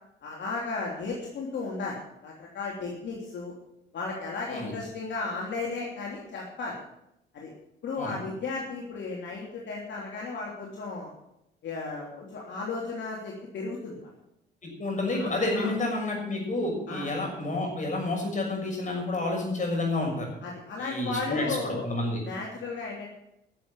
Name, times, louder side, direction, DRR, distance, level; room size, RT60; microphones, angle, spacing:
voice 1, 0.2-3.5 3.9-6.8 7.3-7.5 7.8-11.1 11.6-14.1 15.1-15.7 16.9-17.1 20.4-21.8 22.2-23.1, left 3 dB, 65° left, -2 dB, 3.1 m, -35 dB
voice 2, 14.6-20.3 20.8-22.2, left 2 dB, 40° left, 1 dB, 6.6 m, -29 dB
12.5 x 7.6 x 8.7 m, 0.81 s
cardioid pair, 90°, 20 cm